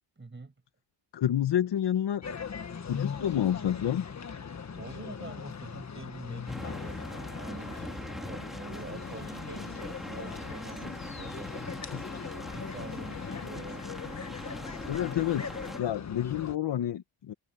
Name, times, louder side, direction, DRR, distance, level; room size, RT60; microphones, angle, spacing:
voice 1, 0.2-0.5 4.7-11.9 12.3-13.9, right 3 dB, 25° right, 7.6 m, -46 dB
voice 2, 1.1-2.2 2.9-4.0 11.9-12.0 14.9-15.5 15.8-17.3, left 11 dB, 70° left, 1.2 m, -29 dB
sound 1, 2.2-16.6, left 6 dB, 40° left, 1.7 m, -40 dB
sound 2, 6.5-15.8, equal, ahead, 3.9 m, -42 dB
cardioid pair, 110°, 44 cm